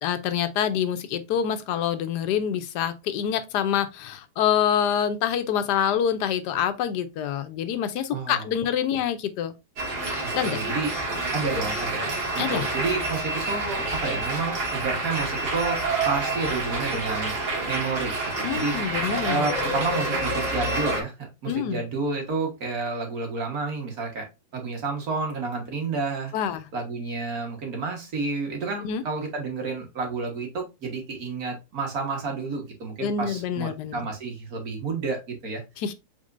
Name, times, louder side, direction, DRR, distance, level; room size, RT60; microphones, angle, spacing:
voice 1, 0.0-9.5 10.3-10.6 12.4-12.6 18.4-19.4 21.5-21.8 26.3-26.7 28.8-29.0 33.0-34.0 35.8-35.9, left 9 dB, 90° left, 1.3 m, -26 dB
voice 2, 8.1-8.4 8.9-9.0 10.4-10.9 11.3-15.8 16.1-17.3 17.7-18.8 19.2-21.1 21.4-24.3 24.5-26.3 26.7-35.6, right 3 dB, 65° right, 1.8 m, -30 dB
sound 1, 9.8-21.0, right 2 dB, 85° right, 2.2 m, -28 dB
5.2 x 3.6 x 2.5 m
omnidirectional pair, 1.7 m